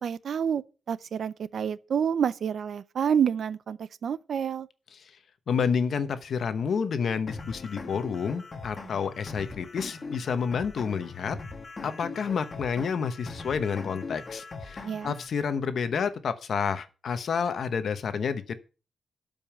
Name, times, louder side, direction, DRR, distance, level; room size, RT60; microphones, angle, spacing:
voice 1, 0.0-4.7 14.8-15.1, right 8 dB, 55° right, 0.4 m, -28 dB
voice 2, 5.5-11.4 11.8-18.5, left 6 dB, 50° left, 1.0 m, -29 dB
sound 1, 7.3-15.3, left 3 dB, 25° left, 1.4 m, -41 dB
12.5 x 5.3 x 5.9 m
wide cardioid pair, 170°, 0 cm